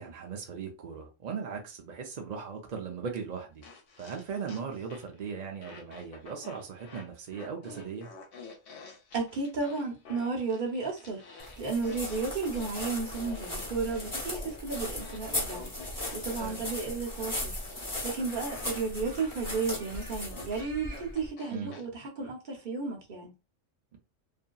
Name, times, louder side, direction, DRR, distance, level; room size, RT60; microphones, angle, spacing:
voice 1, 0.0-3.7 4.0-8.1 16.4-16.7 21.5-21.8, right 6 dB, 60° right, 0.4 m, -38 dB
sound 1, 3.6-5.2 5.6-21.8, left 4 dB, 65° left, 1.0 m, -49 dB
voice 2, 9.1-15.7 16.1-23.3, right 4 dB, 45° right, 0.9 m, -33 dB
sound 2, 11.4-21.3, left 1 dB, 20° left, 0.8 m, -37 dB
2.7 x 2.6 x 2.2 m
omnidirectional pair, 1.3 m